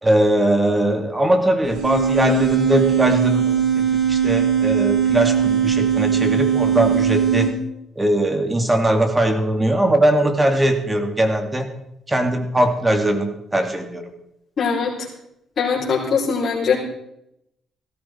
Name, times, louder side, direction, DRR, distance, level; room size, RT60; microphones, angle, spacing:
voice 1, 0.0-7.5 8.0-11.7 12.1-14.1, right 1 dB, 15° right, 6 dB, 2.3 m, -20 dB
sound 1, 1.6-7.5, right 8 dB, 75° right, 3.4 m, -19 dB
voice 2, 14.6-14.9 15.6-16.8, left 5 dB, 50° left, -5 dB, 4.2 m, -21 dB
15.0 x 13.5 x 4.5 m, 0.80 s
cardioid pair, 90°, 0 cm